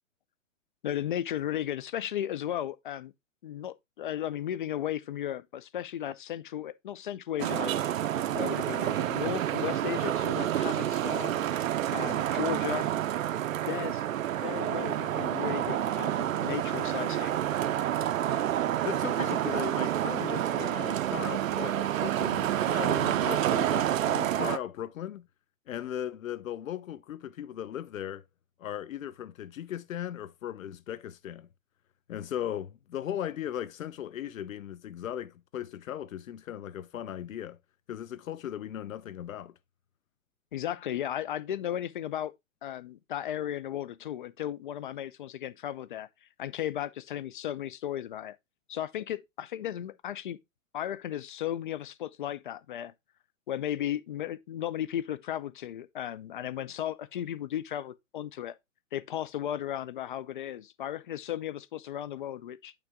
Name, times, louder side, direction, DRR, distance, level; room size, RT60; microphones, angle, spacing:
voice 1, 0.8-3.1 3.4-7.7 8.3-11.4 11.9-12.9 13.7-14.0 14.4-17.3 40.5-42.3 42.6-48.4 48.7-50.4 50.7-52.9 53.5-58.5 58.9-62.7, left 11 dB, 40° left, 0.5 m, -35 dB
Traffic noise roadway noise, 7.4-24.6, right 11 dB, 70° right, 0.8 m, -29 dB
voice 2, 18.8-25.3 25.7-28.2 28.6-31.5 32.1-37.6 37.9-39.5, left 10 dB, 75° left, 0.9 m, -37 dB
8.9 x 3.4 x 3.5 m
hypercardioid pair, 160°, 40 cm